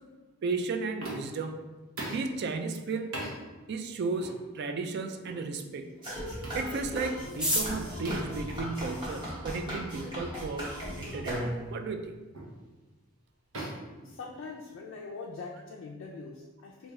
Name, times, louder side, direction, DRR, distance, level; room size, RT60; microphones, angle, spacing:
voice 1, 0.4-1.5 2.1-3.1 3.7-5.9 6.5-12.1, right 4 dB, 55° right, 7 dB, 0.3 m, -34 dB
sound 1, 1.0-1.4 2.0-2.3 3.1-3.4 4.2-4.4 5.2-5.4 6.4-6.7 8.0-8.4 9.7-9.8 10.3-10.4 11.2-11.4 12.3-12.6 13.5-14.8, right 1 dB, 80° right, 0.9 m, -40 dB
sound 2, 6.0-11.8, equal, 25° right, 1.1 m, -37 dB
sound 3, 7.2-9.5 10.3-10.4 10.6-10.7 11.0-11.4 11.8-11.9 12.0-12.5 12.8-13.0 13.3-13.6, equal, 5° right, 0.6 m, -34 dB
voice 2, 14.0-16.9, left 4 dB, 65° left, -1 dB, 0.3 m, -42 dB
3.1 x 2.6 x 3.5 m, 1.2 s
head